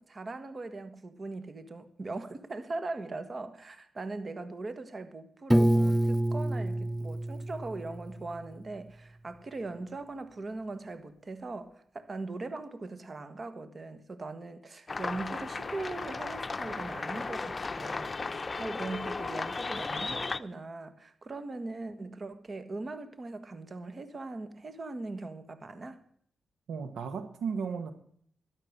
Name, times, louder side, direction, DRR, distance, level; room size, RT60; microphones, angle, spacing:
voice 1, 0.0-26.0, right 3 dB, 40° right, 1.5 m, -40 dB
Piano, 5.5-8.4, right 1 dB, 5° right, 0.4 m, -27 dB
sound 1, 14.9-20.4, left 3 dB, 35° left, 0.7 m, -35 dB
voice 2, 26.7-27.9, right 6 dB, 80° right, 1.2 m, -34 dB
12.5 x 10.5 x 6.7 m
cardioid pair, 55°, 0 cm